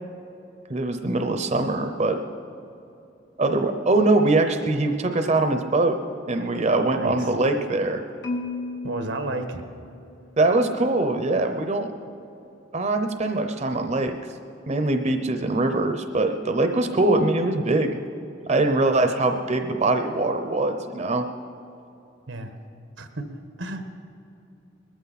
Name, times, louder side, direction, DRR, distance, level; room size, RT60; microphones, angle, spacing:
voice 1, 0.7-2.2 3.4-6.0 6.3-8.0 10.4-11.9 12.7-14.1 14.7-18.0 18.5-21.3, right 2 dB, 35° right, 6 dB, 0.7 m, -22 dB
voice 2, 6.9-7.3 8.8-9.6 22.3-22.5 23.0-23.2 23.6-23.8, right 2 dB, 90° right, 6 dB, 1.3 m, -31 dB
Marimba xylophone, 8.2-10.4, left 2 dB, 70° left, 1.6 m, -34 dB
20.5 x 14.0 x 4.1 m, 2.9 s
head